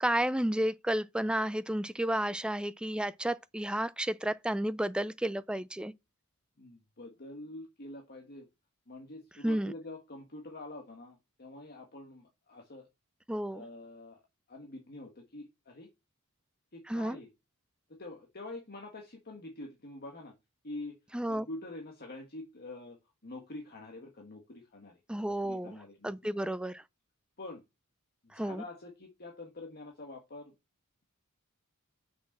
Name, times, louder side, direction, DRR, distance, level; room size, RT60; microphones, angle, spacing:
voice 1, 0.0-5.9 9.4-9.7 13.3-13.6 16.9-17.2 21.1-21.5 25.1-25.8 26.0-26.8 28.3-28.6, right 1 dB, 5° right, 0.4 m, -32 dB
voice 2, 6.6-8.5 8.9-12.9 13.5-14.2 14.5-15.9 16.7-17.3 17.9-20.3 20.6-21.0 21.3-23.0 23.2-25.0 25.3-26.5 27.4-27.6 28.2-30.5, left 2 dB, 45° left, 1.6 m, -46 dB
6.3 x 5.9 x 7.3 m
head